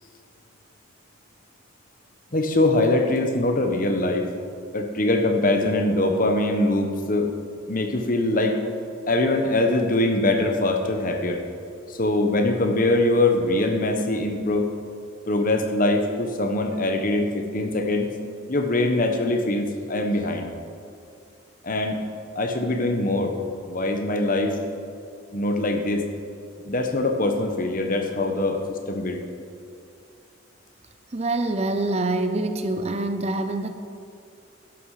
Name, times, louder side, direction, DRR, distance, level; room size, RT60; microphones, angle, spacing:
voice 1, 2.3-4.3 4.7-7.3 7.7-8.6 9.1-11.4 11.9-14.7 15.2-18.1 18.5-20.5 21.6-22.0 22.3-23.3 23.7-24.6 25.3-26.1 26.6-29.2, left 2 dB, 40° left, 5 dB, 1.1 m, -23 dB
voice 2, 31.1-33.7, right 2 dB, 30° right, 8 dB, 0.6 m, -25 dB
12.0 x 11.0 x 5.0 m, 2.4 s
head